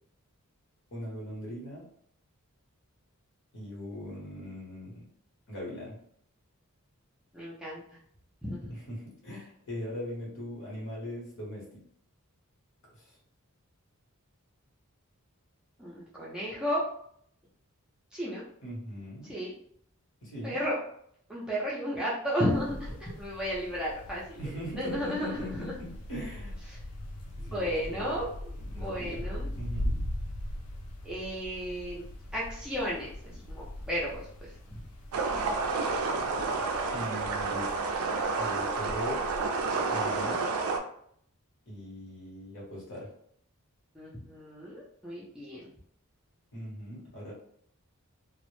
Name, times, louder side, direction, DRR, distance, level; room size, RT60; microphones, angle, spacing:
voice 1, 0.9-1.9 3.5-5.0 5.5-6.0 8.7-11.7 12.9-13.2 18.6-19.3 20.2-20.6 24.4-26.6 27.3-28.1 28.6-30.0 36.9-37.7 38.4-39.2 39.9-40.5 41.7-43.1 46.5-47.3, left 1 dB, 60° left, -3 dB, 0.9 m, -40 dB
voice 2, 7.3-7.8 8.4-8.7 15.8-16.8 18.1-18.4 19.3-19.5 20.4-20.8 21.3-25.7 27.4-29.5 31.0-32.0 32.3-34.5 39.7-40.2 43.9-45.7, equal, 5° right, -7 dB, 0.5 m, -34 dB
sound 1, 22.5-40.2, left 1 dB, 85° left, 0.4 m, -41 dB
sound 2, 35.1-40.8, right 4 dB, 75° right, 0.3 m, -30 dB
2.1 x 2.0 x 3.0 m, 0.66 s
head